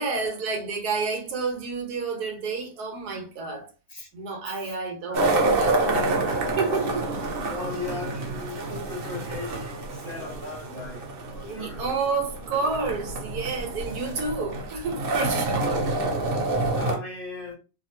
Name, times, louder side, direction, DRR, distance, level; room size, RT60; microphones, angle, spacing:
voice 1, 0.0-3.7 4.1-7.1 11.5-15.9, right 4 dB, 70° right, 1.3 m, -30 dB
sound 1, 5.1-16.9, right 2 dB, 55° right, 0.6 m, -28 dB
voice 2, 7.5-11.0 11.3-11.9 16.7-17.5, left 3 dB, 35° left, 1.3 m, -37 dB
2.9 x 2.7 x 2.6 m
omnidirectional pair, 1.8 m